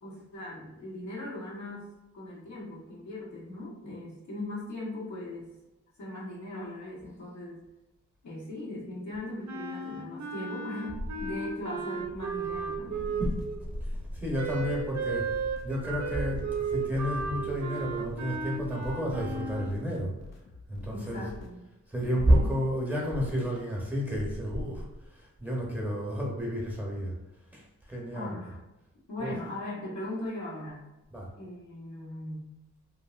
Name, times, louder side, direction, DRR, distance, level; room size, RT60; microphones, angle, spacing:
voice 1, 0.0-1.9 2.1-5.5 6.0-7.6 8.2-13.2 14.3-14.6 20.9-21.6 22.1-22.5 28.1-28.6 29.1-30.8 31.4-32.5, left 1 dB, 80° left, -6 dB, 1.1 m, -39 dB
Wind instrument woodwind instrument, 9.5-13.6 14.3-19.7, right 5 dB, 70° right, 0.5 m, -35 dB
sound 1, 12.8-21.6, left 3 dB, 60° left, 0.5 m, -49 dB
voice 2, 13.7-15.4 15.6-20.1 20.7-21.3 21.9-27.2 27.5-28.6 29.2-29.4 31.1-31.3, equal, 5° right, -3 dB, 0.7 m, -30 dB
2.8 x 2.7 x 2.3 m, 0.98 s
wide cardioid pair, 90°, 29 cm